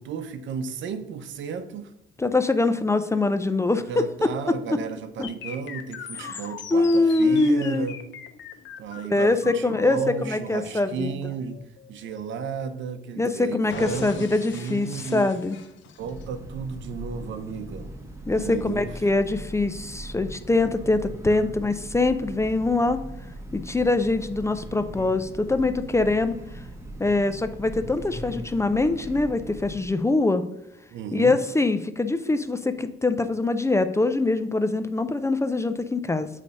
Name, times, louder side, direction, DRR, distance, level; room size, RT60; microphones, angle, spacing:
voice 1, 0.0-1.9 3.9-8.0 8.8-11.6 11.9-15.3 16.0-17.9 18.3-19.0 30.9-31.4, right 6 dB, 70° right, 10 dB, 0.7 m, -33 dB
voice 2, 2.2-4.3 5.2-5.3 6.2-6.4 6.7-7.9 9.1-10.0 10.3-11.1 13.2-15.6 18.3-23.0 23.5-26.4 27.0-30.5 31.1-36.3, left 2 dB, 15° left, 10 dB, 0.4 m, -23 dB
sound 1, 5.2-13.2 13.7-16.2, left 7 dB, 70° left, 0.8 m, -41 dB
Train, 16.0-29.9, right 1 dB, 15° right, 1.3 m, -40 dB
8.1 x 3.3 x 5.2 m, 0.84 s
cardioid pair, 90°, 20 cm